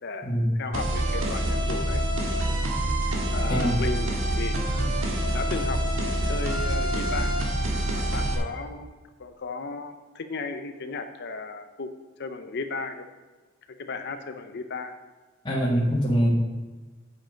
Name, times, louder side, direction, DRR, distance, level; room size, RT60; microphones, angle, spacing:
voice 1, 0.0-2.0 3.3-4.9 5.3-5.8 6.3-7.4 7.9-13.1 13.8-15.0, left 4 dB, 55° left, 7 dB, 0.7 m, -35 dB
sound 1, 0.7-8.3, right 1 dB, 70° right, 1.7 m, -26 dB
voice 2, 15.4-16.3, equal, 25° left, -6 dB, 1.7 m, -23 dB
9.1 x 7.4 x 5.2 m, 1.3 s
head